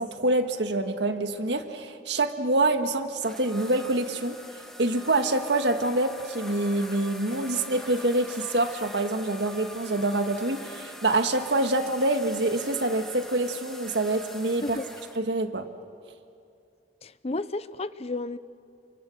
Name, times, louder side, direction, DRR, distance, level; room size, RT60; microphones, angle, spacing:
voice 1, 0.0-4.4 4.8-14.8 15.2-15.7, right 2 dB, 85° right, 7 dB, 1.6 m, -26 dB
sound 1, 3.2-15.2, equal, 5° left, 1.7 m, -43 dB
voice 2, 17.0-18.4, left 2 dB, 35° left, 15 dB, 0.7 m, -32 dB
29.5 x 24.0 x 8.0 m, 2.5 s
head